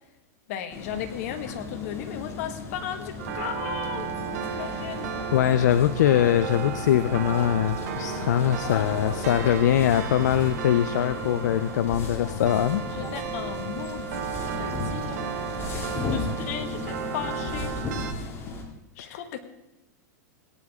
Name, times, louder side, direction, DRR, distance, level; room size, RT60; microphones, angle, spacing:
voice 1, 0.5-4.1 4.5-5.1 8.6-9.6 12.8-14.3 14.6-15.3 15.7-17.7 18.9-19.4, left 9 dB, 55° left, 7 dB, 1.7 m, -36 dB
sound 1, 0.7-18.6, left 3 dB, 25° left, 2.4 m, -35 dB
sound 2, 3.2-18.1, right 8 dB, 70° right, 1.4 m, -34 dB
voice 2, 5.3-12.8 19.0-19.2, left 11 dB, 75° left, 13 dB, 0.6 m, -22 dB
18.0 x 10.0 x 3.6 m, 0.94 s
hypercardioid pair, 130°, 9 cm